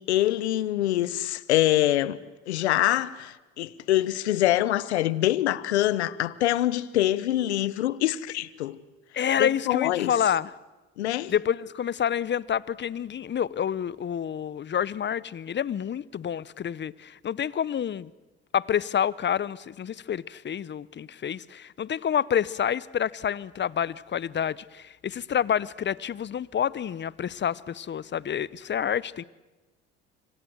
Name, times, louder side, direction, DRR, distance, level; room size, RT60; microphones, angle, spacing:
voice 1, 0.1-2.2 2.5-8.8 9.4-10.1 11.0-11.3, left 14 dB, 90° left, 1.0 m, -25 dB
voice 2, 9.1-10.5 11.3-18.1 18.5-29.2, left 9 dB, 35° left, 0.9 m, -28 dB
26.5 x 25.5 x 8.0 m
hypercardioid pair, 65°, 32 cm